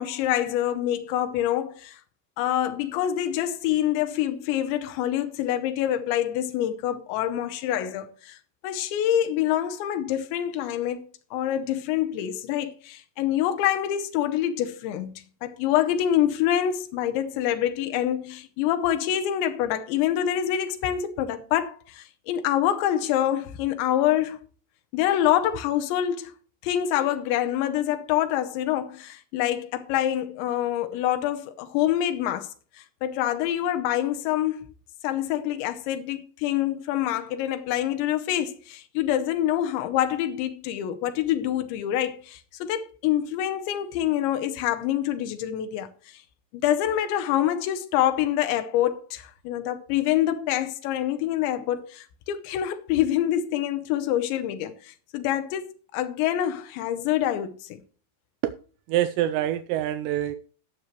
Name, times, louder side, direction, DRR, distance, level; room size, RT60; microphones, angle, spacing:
voice 1, 0.0-2.0 2.4-8.4 8.6-11.0 11.3-15.1 15.4-24.4 24.9-26.3 26.6-32.5 32.8-34.7 35.0-46.2 46.5-57.8, left 11 dB, 85° left, 3.3 m, -26 dB
voice 2, 58.9-60.4, right 13 dB, 80° right, 2.8 m, -25 dB
18.0 x 6.7 x 3.1 m
omnidirectional pair, 5.1 m